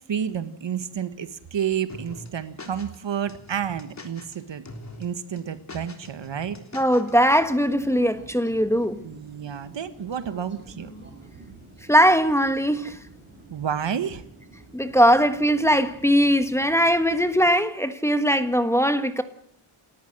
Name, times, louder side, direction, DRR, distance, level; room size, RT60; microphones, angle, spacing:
voice 1, 0.1-4.6 5.0-6.6 9.0-10.9 13.5-14.2, right 8 dB, 60° right, 1.6 m, -30 dB
sound 1, 1.9-3.0 3.3-4.4 4.7-5.0 5.4-7.1, left 2 dB, 35° left, 3.5 m, -42 dB
voice 2, 6.7-9.0 11.9-13.0 14.7-19.2, equal, 5° left, 1.4 m, -20 dB
sound 2, 7.1-17.5, right 1 dB, 20° right, 5.9 m, -48 dB
29.0 x 13.5 x 7.9 m
wide cardioid pair, 125°, 50 cm